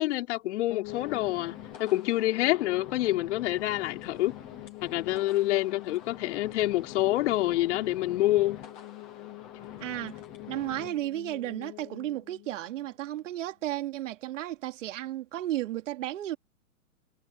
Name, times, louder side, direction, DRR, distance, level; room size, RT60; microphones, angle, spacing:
voice 1, 0.0-4.3 4.8-8.6, left 16 dB, 50° left, 4.9 m, -27 dB
sound 1, 0.7-13.6, left 24 dB, 30° left, 3.1 m, -46 dB
sound 2, 0.8-10.9, left 8 dB, 5° left, 0.3 m, -47 dB
voice 2, 9.8-10.2 10.5-16.4, right 14 dB, 55° right, 3.3 m, -33 dB
hypercardioid pair, 135°, 44 cm